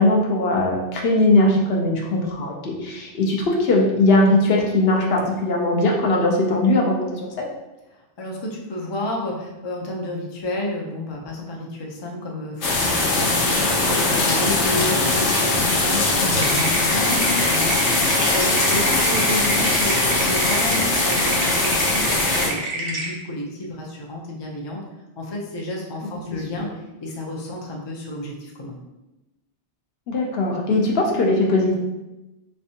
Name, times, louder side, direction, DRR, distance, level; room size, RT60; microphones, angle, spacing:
voice 1, 0.0-7.5 14.8-15.0 16.2-16.7 26.6-26.7 30.1-31.7, left 2 dB, 65° left, -1 dB, 0.8 m, -20 dB
voice 2, 7.9-24.8 25.2-28.8, left 1 dB, 35° left, -1 dB, 0.4 m, -31 dB
sound 1, 12.6-22.5, left 2 dB, 85° left, 1.1 m, -21 dB
sound 2, 16.4-23.1, right 2 dB, 80° right, 1.0 m, -28 dB
3.4 x 3.2 x 2.7 m, 1.0 s
omnidirectional pair, 1.2 m